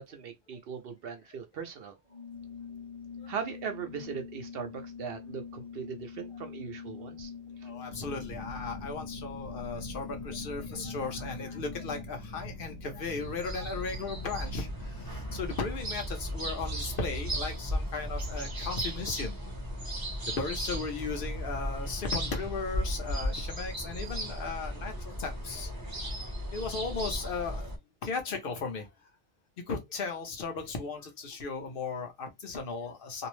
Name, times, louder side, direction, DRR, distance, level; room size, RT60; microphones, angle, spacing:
voice 1, 0.0-1.9 3.3-7.3 7.6-7.7, right 6 dB, 70° right, 0.8 m, -39 dB
Organ, 2.1-12.3, left 6 dB, 35° left, 0.9 m, -44 dB
voice 2, 7.6-19.5 20.3-26.1 26.5-27.7 28.0-28.9 29.7-33.3, left 4 dB, 60° left, 0.9 m, -36 dB
sound 1, 7.9-15.4, equal, 85° left, 1.1 m, -44 dB
sound 2, 13.2-27.8, equal, 25° right, 0.7 m, -36 dB
2.7 x 2.0 x 3.0 m
omnidirectional pair, 1.1 m